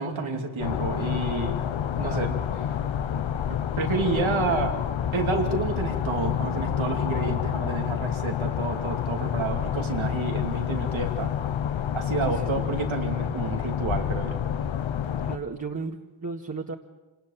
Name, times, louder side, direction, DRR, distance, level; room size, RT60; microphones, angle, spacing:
voice 1, 0.0-1.6 2.0-2.3 3.2-3.3 3.8-4.7 5.1-11.3 11.9-14.4, right 3 dB, 85° right, 3 dB, 2.8 m, -29 dB
sound 1, 0.6-15.4, left 9 dB, 85° left, 1.0 m, -28 dB
voice 2, 2.0-2.4 12.2-12.7 15.2-16.7, right 4 dB, 40° right, 0 dB, 1.9 m, -35 dB
26.0 x 19.5 x 7.3 m, 1.2 s
cardioid pair, 55°, 46 cm